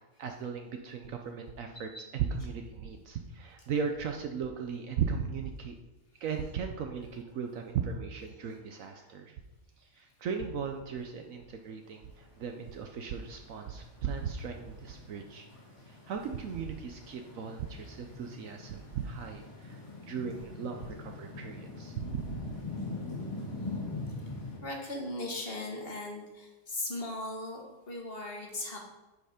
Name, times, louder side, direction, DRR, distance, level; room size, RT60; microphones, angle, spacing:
voice 1, 0.2-5.7 6.2-9.4 9.8-15.5 15.9-22.5, right 6 dB, 70° right, 4 dB, 1.1 m, -37 dB
sound 1, 11.8-24.6, left 3 dB, 75° left, 3.1 m, -43 dB
voice 2, 24.6-28.8, left 2 dB, 40° left, 1 dB, 1.8 m, -38 dB
10.0 x 5.5 x 5.0 m, 1.1 s
omnidirectional pair, 1.5 m